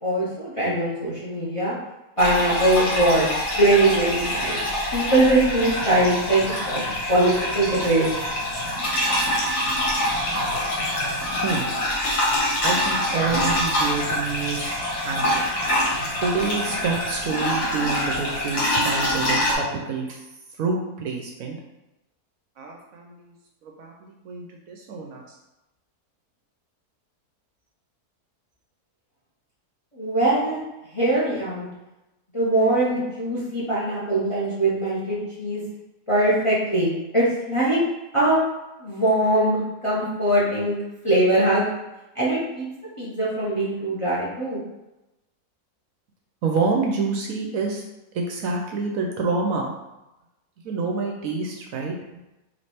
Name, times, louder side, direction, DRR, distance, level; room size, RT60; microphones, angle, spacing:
voice 1, 0.0-1.8 2.2-3.3 3.6-4.6 4.9-6.8 7.1-8.1 29.9-30.6 30.9-31.7 32.3-35.6 36.1-37.8 38.1-38.4 38.8-40.8 41.0-41.6 42.1-42.6 43.0-44.6, right 1 dB, 25° left, -8 dB, 0.7 m, -21 dB
sound 1, 2.2-19.5, left 1 dB, 75° left, 1.5 m, -25 dB
voice 2, 12.6-14.7 15.0-15.3 16.2-20.2 20.6-21.6 22.6-23.3 23.6-25.2 46.4-47.8 48.1-49.7 50.6-52.0, right 4 dB, 70° right, 1 dB, 0.9 m, -27 dB
3.2 x 2.9 x 4.2 m, 0.98 s
omnidirectional pair, 1.7 m